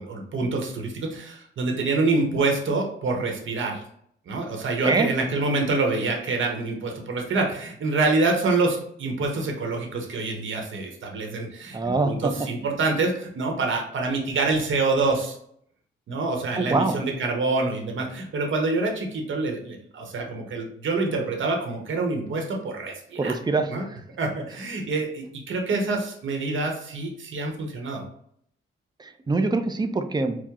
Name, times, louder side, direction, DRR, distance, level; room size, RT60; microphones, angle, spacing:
voice 1, 0.0-3.8 4.3-15.3 16.1-23.4 23.7-23.9 24.2-28.0, right 3 dB, 70° right, 2 dB, 0.9 m, -26 dB
voice 2, 11.7-12.3 16.6-17.0 23.2-23.7 29.0-30.4, right 3 dB, 20° right, 7 dB, 0.5 m, -24 dB
4.6 x 2.1 x 3.5 m, 0.66 s
cardioid pair, 85°, 21 cm